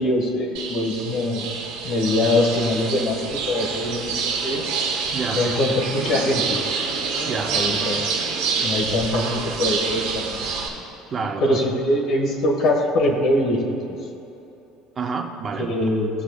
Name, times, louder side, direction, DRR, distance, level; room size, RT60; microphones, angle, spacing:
voice 1, 0.0-1.5 1.8-4.6 5.3-6.6 7.1-7.2 7.5-8.1 8.5-10.5 10.7-10.8 11.4-14.0 15.6-16.1, left 1 dB, 55° left, 0 dB, 1.3 m, -23 dB
sound 1, 0.5-10.7, right 5 dB, 90° right, 1.2 m, -27 dB
voice 2, 5.1-5.5 7.2-7.6 11.1-11.7 15.0-15.7, right 5 dB, 30° right, 4 dB, 0.7 m, -28 dB
16.0 x 6.3 x 2.3 m, 2.9 s
cardioid pair, 130°, 0 cm